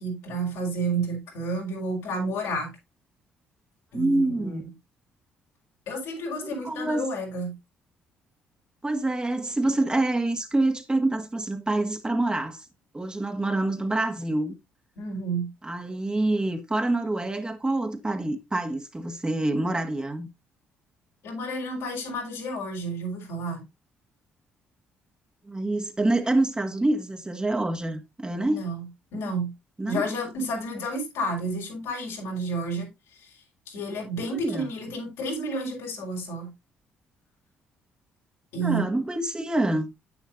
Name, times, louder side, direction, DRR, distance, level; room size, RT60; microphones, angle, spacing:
voice 1, 0.0-2.7 3.9-4.6 5.9-7.5 15.0-15.5 21.2-23.6 28.4-28.8 29.1-29.5 29.9-32.9 33.2-33.3 33.7-36.5 38.5-38.9, right 2 dB, 80° left, 5.5 m, -31 dB
voice 2, 3.9-4.7 6.4-7.1 8.8-12.7 12.9-14.5 15.6-20.3 25.4-28.6 29.8-30.1 34.3-34.7 38.6-39.9, right 2 dB, 20° right, 1.7 m, -26 dB
9.9 x 9.0 x 2.7 m
supercardioid pair, 60°, 4 cm